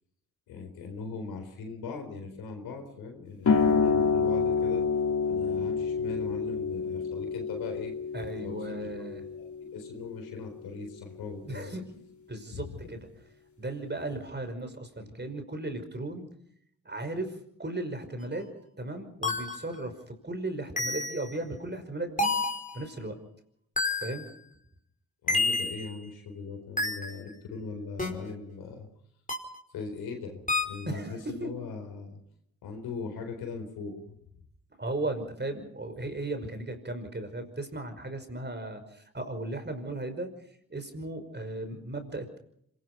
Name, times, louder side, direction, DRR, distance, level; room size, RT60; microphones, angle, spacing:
voice 1, 0.5-4.8 5.3-7.9 8.4-8.9 9.3-11.8 12.5-12.9 25.2-28.9 29.7-30.4 30.6-32.2 32.6-34.2, left 4 dB, 90° left, 5 dB, 4.3 m, -39 dB
sound 1, 3.4-10.6, left 5 dB, 55° left, 3.3 m, -28 dB
voice 2, 8.1-9.2 11.4-12.0 12.3-13.1 13.6-16.3 16.9-17.3 17.6-18.5 18.8-22.3 22.7-23.2 24.0-24.3 30.8-31.5 34.7-40.3 40.7-42.4, right 2 dB, 30° right, 7 dB, 5.6 m, -36 dB
sound 2, 18.2-18.3 19.2-19.7 20.8-21.4 22.2-22.8 23.8-24.3 25.3-25.9 26.8-27.2 28.0-28.1 29.3-29.6 30.5-30.8, left 3 dB, 20° left, 5.0 m, -29 dB
26.0 x 18.5 x 5.7 m, 0.70 s
supercardioid pair, 40°, 36 cm